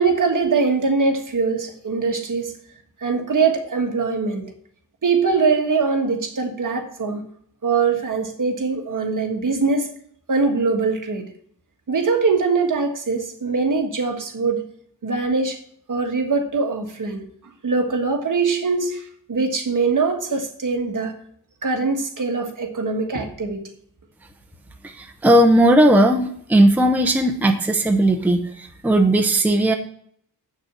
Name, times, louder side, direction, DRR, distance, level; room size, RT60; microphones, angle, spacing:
voice 1, 0.0-2.6 3.0-4.5 5.0-7.2 7.6-9.9 10.3-11.3 11.9-14.7 15.0-15.6 15.9-17.2 17.6-21.1 21.6-23.7, right 4 dB, 55° right, 1.6 m, -22 dB
voice 2, 24.8-29.7, right 1 dB, 5° right, 0.7 m, -17 dB
8.0 x 6.5 x 7.2 m
wide cardioid pair, 180°, 38 cm